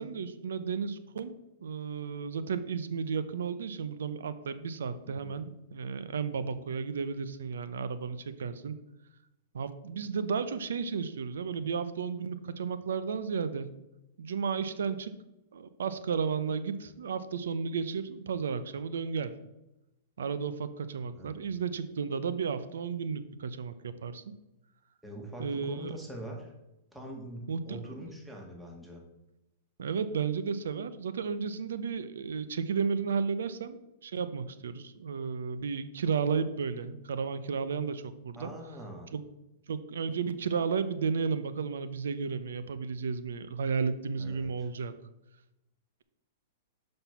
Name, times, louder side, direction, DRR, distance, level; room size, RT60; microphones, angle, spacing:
voice 1, 0.0-1.3 1.6-8.7 9.5-13.7 14.2-15.1 15.5-19.3 20.2-24.3 25.4-25.9 27.5-28.0 29.8-33.8 34.0-38.5 39.1-39.2 39.7-44.9, right 6 dB, 85° right, 12 dB, 0.6 m, -33 dB
voice 2, 5.1-5.4 21.1-21.4 25.0-26.5 26.9-29.0 38.4-39.1 44.1-44.7, equal, 5° right, 0 dB, 1.8 m, -43 dB
5.8 x 5.4 x 5.9 m, 0.93 s
hypercardioid pair, 125°, 0 cm